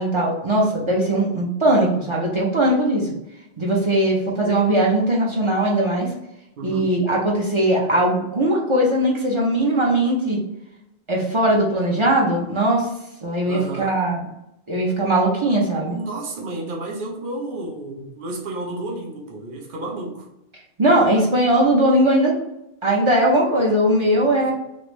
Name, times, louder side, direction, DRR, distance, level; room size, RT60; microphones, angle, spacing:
voice 1, 0.0-3.1 3.6-6.1 6.6-10.4 11.1-12.9 13.2-14.2 14.7-16.0 20.8-22.3 22.8-24.5, right 1 dB, 35° right, -3 dB, 0.6 m, -19 dB
voice 2, 6.6-7.0 13.4-14.0 15.8-20.3 24.4-24.5, right 2 dB, 60° right, 0 dB, 0.9 m, -31 dB
3.2 x 2.5 x 3.0 m, 0.86 s
omnidirectional pair, 1.0 m